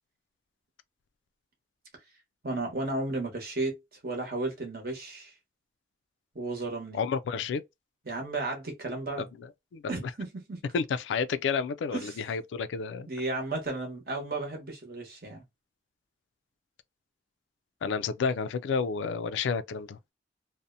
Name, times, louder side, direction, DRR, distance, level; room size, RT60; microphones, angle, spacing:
voice 1, 2.4-3.8 4.0-5.3 6.3-7.0 8.1-9.3 9.9-10.6 11.9-12.2 13.1-15.4, right 2 dB, 55° right, 0.9 m, -33 dB
voice 2, 6.9-7.6 9.2-9.8 10.7-13.1 17.8-20.0, left 5 dB, 90° left, 0.3 m, -30 dB
2.7 x 2.0 x 2.4 m
head